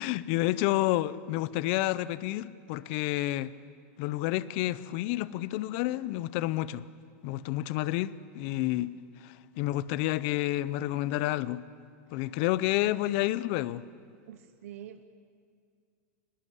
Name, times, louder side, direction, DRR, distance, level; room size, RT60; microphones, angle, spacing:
voice 1, 0.0-3.5 4.0-6.8 7.2-9.0 9.2-11.6 12.1-13.9, left 16 dB, 45° left, 0.6 m, -29 dB
voice 2, 14.3-15.0, right 10 dB, 85° right, 0.9 m, -45 dB
22.0 x 20.5 x 8.3 m
supercardioid pair, 160°, 8 cm